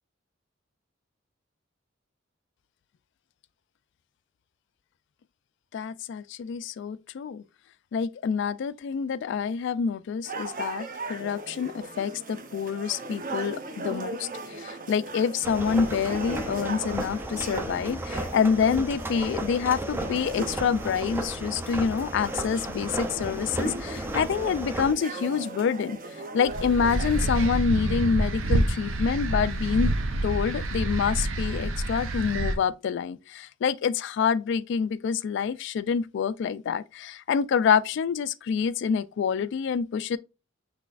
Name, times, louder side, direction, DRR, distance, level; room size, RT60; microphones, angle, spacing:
voice 1, 5.7-7.4 7.9-14.3 14.5-26.0 26.3-29.9 30.2-40.2, left 6 dB, 60° left, 0.3 m, -27 dB
sound 1, 10.2-27.5, right 2 dB, 45° right, 0.8 m, -38 dB
sound 2, 15.4-24.9, right 1 dB, 10° right, 0.4 m, -34 dB
sound 3, 26.5-32.6, right 1 dB, 85° right, 0.7 m, -27 dB
5.9 x 3.3 x 2.4 m
head